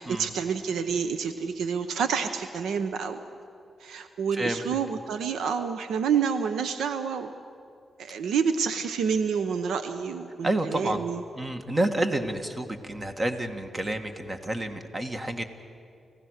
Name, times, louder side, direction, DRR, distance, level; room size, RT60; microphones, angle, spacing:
voice 1, 0.0-3.2 3.8-7.3 8.0-11.2, right 6 dB, 90° right, 10 dB, 0.8 m, -28 dB
voice 2, 10.4-11.1 11.4-15.4, right 1 dB, 30° right, 7 dB, 1.9 m, -29 dB
29.5 x 15.5 x 6.5 m, 2.4 s
cardioid pair, 70°, 0 cm